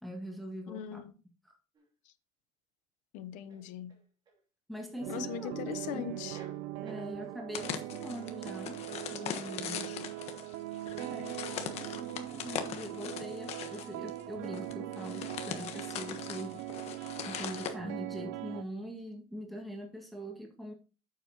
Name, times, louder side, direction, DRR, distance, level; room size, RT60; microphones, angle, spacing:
voice 1, 0.0-1.1 1.4-1.5 4.7-6.0 6.8-8.8 9.1-9.9 11.0-16.5 17.3-20.7, equal, ahead, 1.9 m, -43 dB
voice 2, 0.7-1.1 3.1-3.9 5.1-6.4, left 9 dB, 75° left, 0.8 m, -40 dB
sound 1, 1.7-1.9 3.5-4.4 5.3-5.9 6.1-7.1, right 4 dB, 35° right, 2.9 m, -55 dB
sound 2, 5.0-18.6, right 15 dB, 85° right, 0.5 m, -41 dB
sound 3, 7.5-17.7, left 9 dB, 55° left, 1.3 m, -41 dB
8.8 x 7.6 x 2.9 m
cardioid pair, 140°, 13 cm